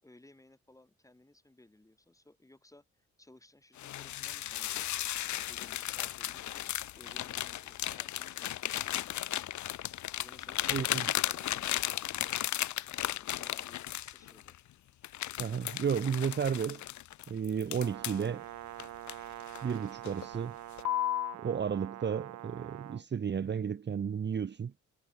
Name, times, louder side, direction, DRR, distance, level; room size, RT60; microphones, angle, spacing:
voice 1, 0.0-9.5 10.2-12.4 13.1-14.6, left 1 dB, 10° left, 6.5 m, -59 dB
sound 1, 3.8-14.6 15.0-18.3 18.8-19.7 20.1-20.3 20.8-21.4, left 13 dB, 70° left, 1.3 m, -35 dB
voice 2, 10.7-11.1 15.4-16.8 17.3-18.5 19.6-20.6 21.4-24.7, right 7 dB, 35° right, 1.1 m, -33 dB
Brass instrument, 17.8-23.0, right 14 dB, 70° right, 0.7 m, -45 dB
cardioid pair, 90°, 30 cm